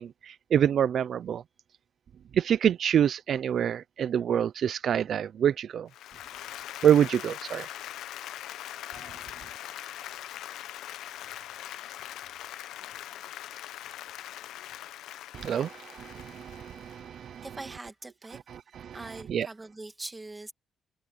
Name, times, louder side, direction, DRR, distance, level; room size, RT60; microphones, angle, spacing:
voice 1, 0.0-1.4 2.3-5.9 6.8-7.7 15.3-17.4 18.8-19.0 19.3-19.5, right 9 dB, 60° right, 0.5 m, -26 dB
Applause, 5.9-17.2, left 12 dB, 85° left, 0.8 m, -42 dB
voice 2, 17.4-18.4 18.9-20.5, right 2 dB, 20° right, 2.4 m, -42 dB
cardioid pair, 90°, 0 cm